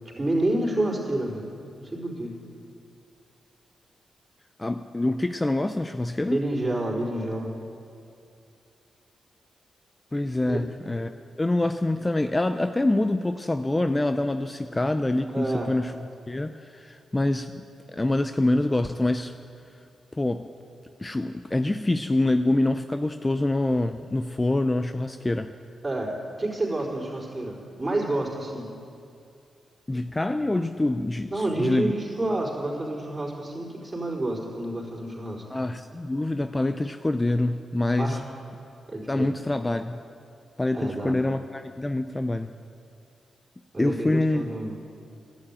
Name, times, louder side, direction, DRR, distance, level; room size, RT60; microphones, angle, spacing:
voice 1, 0.2-1.5 1.8-2.3 6.2-7.5 10.5-10.6 15.3-15.7 25.8-26.1 26.4-28.7 31.3-35.4 38.0-38.2 38.9-39.3 40.7-41.2 43.7-44.7, right 1 dB, 25° right, -4 dB, 4.2 m, -29 dB
voice 2, 4.6-6.4 10.1-11.1 11.4-15.9 16.3-17.6 17.9-19.3 20.1-20.5 21.0-25.5 29.9-31.9 35.5-38.2 39.1-40.0 40.6-42.5 43.8-44.4, left 2 dB, 20° left, 9 dB, 0.5 m, -25 dB
11.5 x 9.1 x 8.9 m, 2.5 s
supercardioid pair, 50°, 0 cm